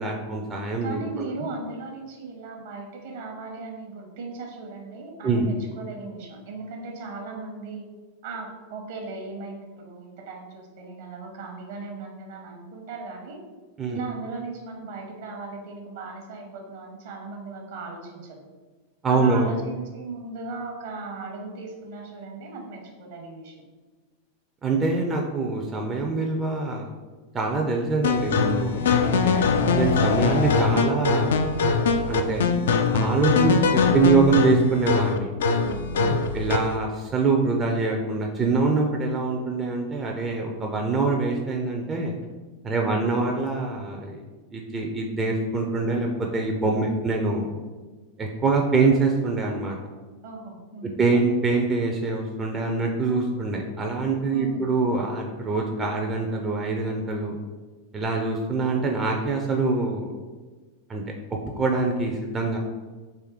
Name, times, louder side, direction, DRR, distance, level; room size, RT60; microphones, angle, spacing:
voice 1, 0.0-1.5 5.2-5.5 13.8-14.0 19.0-19.5 24.6-26.9 27.3-29.4 29.7-31.4 32.1-32.5 32.9-35.3 36.1-42.1 42.6-44.2 44.5-47.6 48.2-49.8 51.0-57.3 57.9-60.1 60.9-61.0 61.6-62.6, right 3 dB, 20° right, 0 dB, 0.5 m, -24 dB
voice 2, 0.8-7.9 8.2-13.4 13.9-18.4 19.1-23.6 29.4-29.8 33.6-34.4 35.5-36.3 42.7-43.0 46.8-47.1 50.2-51.0 54.3-54.7, right 3 dB, 55° right, 2 dB, 1.0 m, -37 dB
sound 1, 28.0-36.8, left 5 dB, 60° left, 0.3 m, -22 dB
3.4 x 3.3 x 4.5 m, 1.3 s
figure-of-eight pair, 90°, 0 cm